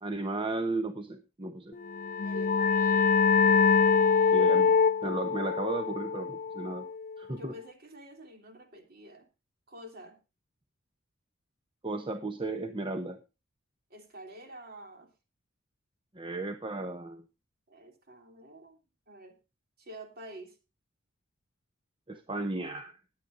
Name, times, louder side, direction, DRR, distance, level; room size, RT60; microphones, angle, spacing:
voice 1, 0.0-1.8 4.3-4.8 5.0-6.9 7.2-7.5 11.8-13.2 16.1-17.2 22.1-23.0, right 2 dB, 25° right, 7 dB, 0.9 m, -34 dB
sound 1, 1.9-7.2, left 5 dB, 40° left, 0.5 m, -24 dB
voice 2, 2.2-3.1 7.3-9.3 9.7-10.2 13.9-15.1 17.7-18.8 19.1-19.4 19.8-20.6, right 1 dB, 45° right, 5 dB, 3.0 m, -48 dB
19.5 x 8.9 x 2.6 m, 0.29 s
head